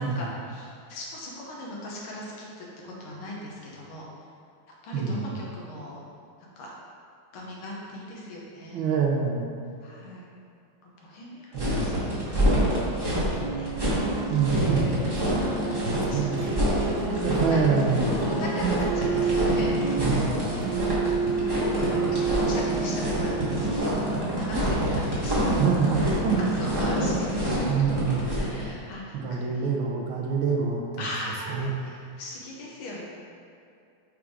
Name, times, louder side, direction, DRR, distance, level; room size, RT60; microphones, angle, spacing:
voice 1, 0.0-4.1 4.8-6.0 6.6-6.7 7.3-8.8 9.8-10.3 10.8-13.3 13.6-13.7 15.3-16.5 17.1-17.6 18.4-20.2 20.5-24.0 24.4-25.6 26.4-27.3 27.6-27.8 28.3-29.7 31.0-33.0, left 1 dB, 85° left, -4 dB, 1.9 m, -39 dB
voice 2, 4.9-5.3 8.7-9.5 11.5-11.9 14.3-14.9 15.9-16.4 17.1-18.1 18.6-18.8 20.0-20.3 25.6-26.5 27.7-28.3 29.1-31.0 31.5-31.7, right 5 dB, 75° right, 0 dB, 1.5 m, -26 dB
sound 1, 11.5-28.6, equal, 15° right, 0.9 m, -27 dB
sound 2, 13.3-23.8, right 5 dB, 60° right, 1.2 m, -30 dB
5.8 x 4.8 x 3.6 m, 2.5 s
omnidirectional pair, 2.3 m